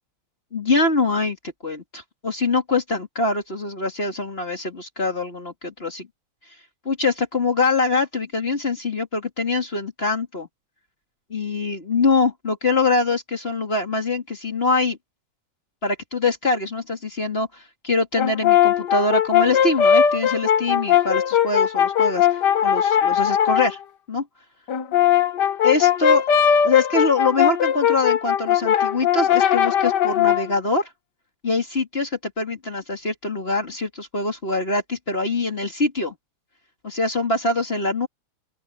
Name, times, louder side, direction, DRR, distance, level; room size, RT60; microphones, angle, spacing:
voice 1, 0.5-1.4 1.6-6.1 6.9-10.5 11.3-15.0 15.8-23.8 24.1-24.3 25.6-26.2 26.6-30.9 31.4-36.1 36.8-38.1, left 3 dB, 20° left, 2.0 m, -24 dB
Brass instrument, 18.2-23.7 24.7-30.5, left 9 dB, 80° left, 0.9 m, -19 dB
open air
omnidirectional pair, 3.4 m